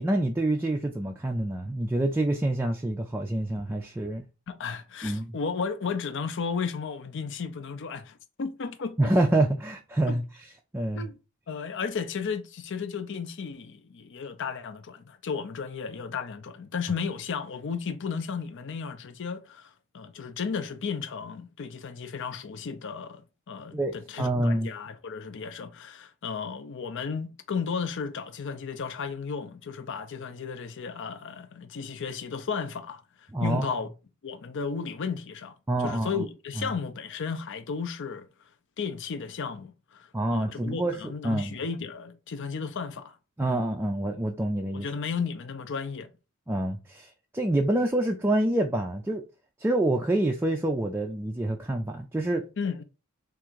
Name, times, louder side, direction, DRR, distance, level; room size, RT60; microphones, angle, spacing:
voice 1, 0.0-4.3 5.0-5.4 9.0-10.2 10.7-11.1 23.7-24.7 33.3-33.7 35.7-36.2 36.6-36.7 40.1-41.6 43.4-44.9 46.5-49.2 49.6-52.4, right 1 dB, 10° right, 0.4 m, -27 dB
voice 2, 4.5-9.0 10.1-10.2 11.0-11.2 11.5-23.2 23.5-33.0 33.4-33.9 34.2-35.5 35.8-38.3 38.8-43.2 43.4-43.6 44.7-46.1 52.6-52.8, left 5 dB, 60° left, 0.5 m, -34 dB
3.7 x 2.5 x 4.5 m
head